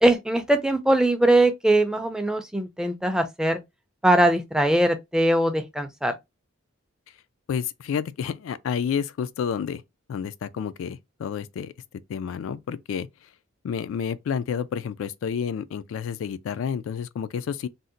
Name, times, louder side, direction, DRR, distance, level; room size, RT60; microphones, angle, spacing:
voice 1, 0.0-3.6 4.0-6.2, right 1 dB, 5° right, 0.4 m, -21 dB
voice 2, 7.5-9.8 10.1-11.7 12.1-13.1 13.6-17.7, left 7 dB, 75° left, 0.3 m, -30 dB
2.6 x 2.1 x 3.8 m
head